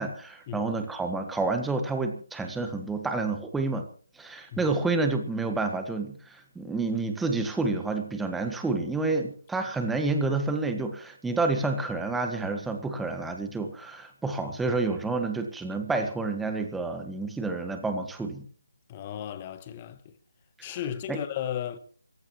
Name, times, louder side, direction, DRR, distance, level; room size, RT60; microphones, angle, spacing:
voice 1, 0.0-3.9 4.2-18.4 20.6-20.8 21.1-21.2, right 3 dB, 5° right, 1.6 m, -29 dB
voice 2, 18.9-20.1 20.6-21.8, left 10 dB, 20° left, 1.4 m, -34 dB
28.0 x 15.5 x 3.1 m
figure-of-eight pair, 155°, 0 cm